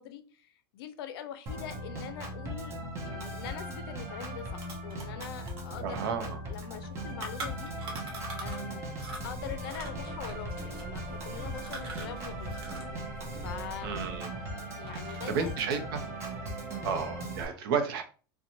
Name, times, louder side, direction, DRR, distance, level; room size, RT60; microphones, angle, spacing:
voice 1, 0.0-2.8 3.0-6.1 6.5-7.7 8.4-8.9 9.2-12.5 13.3-14.0 14.8-15.6 16.7-16.9, left 10 dB, 75° left, 0.4 m, -43 dB
Organ, 1.5-17.5, right 1 dB, 20° right, 0.6 m, -39 dB
sound 1, 4.0-4.1 4.3-8.7 9.0-13.0 13.2-14.4 14.8-15.4, right 2 dB, 80° right, 1.0 m, -44 dB
voice 2, 5.8-6.4 13.8-14.3 15.3-16.0 16.8-18.0, right 6 dB, 65° right, 0.6 m, -32 dB
sound 2, 9.1-14.2, right 2 dB, 25° left, 1.0 m, -45 dB
2.5 x 2.2 x 2.8 m
supercardioid pair, 155°, 13 cm